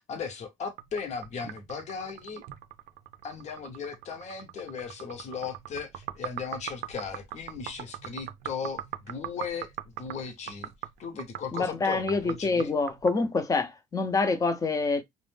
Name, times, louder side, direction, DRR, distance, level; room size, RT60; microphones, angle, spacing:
voice 1, 0.0-2.4 3.2-10.7 11.0-12.7, left 6 dB, 50° left, 0.8 m, -37 dB
sound 1, 0.8-13.2, right 13 dB, 80° right, 0.4 m, -41 dB
voice 2, 11.5-15.0, left 3 dB, 25° left, 0.6 m, -26 dB
2.4 x 2.1 x 3.3 m
cardioid pair, 115°, 15 cm